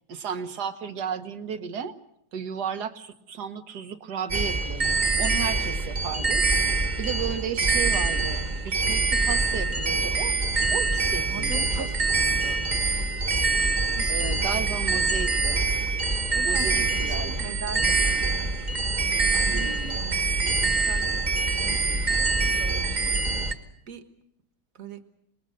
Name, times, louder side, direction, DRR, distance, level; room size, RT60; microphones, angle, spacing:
voice 1, 0.1-1.9 2.3-6.4 7.0-10.4 10.7-11.9 14.1-15.6 16.4-17.5 19.5-20.0, right 7 dB, 70° right, 9 dB, 1.8 m, -34 dB
sound 1, 4.3-23.5, right 3 dB, 30° right, 1.4 m, -25 dB
voice 2, 11.3-13.1 14.0-14.3 14.9-15.2 16.0-18.5 19.0-20.2 20.5-24.1 24.8-25.0, right 4 dB, 55° right, 8 dB, 1.8 m, -42 dB
26.5 x 21.0 x 6.5 m, 0.76 s
omnidirectional pair, 1.8 m